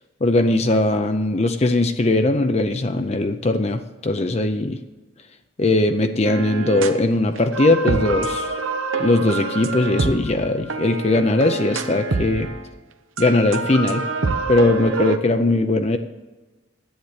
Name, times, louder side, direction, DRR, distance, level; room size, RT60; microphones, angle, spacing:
voice 1, 0.2-4.8 5.6-8.6 9.0-12.5 13.2-14.1 14.5-16.0, left 2 dB, 30° left, 7 dB, 0.5 m, -19 dB
sound 1, 6.3-7.0 7.4-12.6 13.2-15.2, right 3 dB, 85° right, 0.9 m, -26 dB
10.5 x 8.7 x 8.0 m, 1.2 s
head